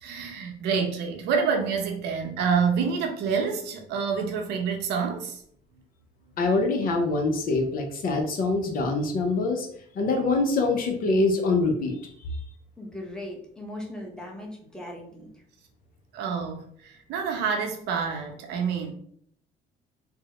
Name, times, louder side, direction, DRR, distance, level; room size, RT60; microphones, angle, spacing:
voice 1, 0.0-5.4 16.1-18.9, right 6 dB, 85° right, 3 dB, 0.7 m, -27 dB
voice 2, 6.4-9.7 9.9-12.1, left 3 dB, 55° left, 3 dB, 0.7 m, -24 dB
voice 3, 12.8-15.4, left 1 dB, 5° left, -1 dB, 0.9 m, -39 dB
3.5 x 2.1 x 2.9 m, 0.63 s
cardioid pair, 110°, 17 cm